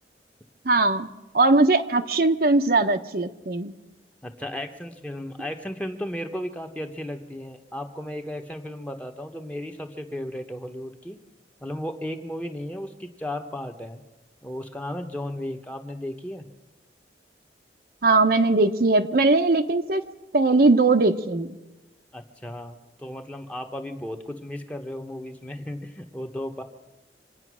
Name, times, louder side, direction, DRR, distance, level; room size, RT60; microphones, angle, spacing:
voice 1, 0.6-1.1 1.3-3.7 18.0-20.0 20.3-21.6, right 3 dB, 55° right, 7 dB, 0.8 m, -20 dB
voice 2, 4.2-11.2 11.6-14.0 14.4-16.5 22.1-26.6, left 1 dB, 10° left, 4 dB, 1.0 m, -35 dB
26.0 x 8.9 x 6.2 m, 1.1 s
head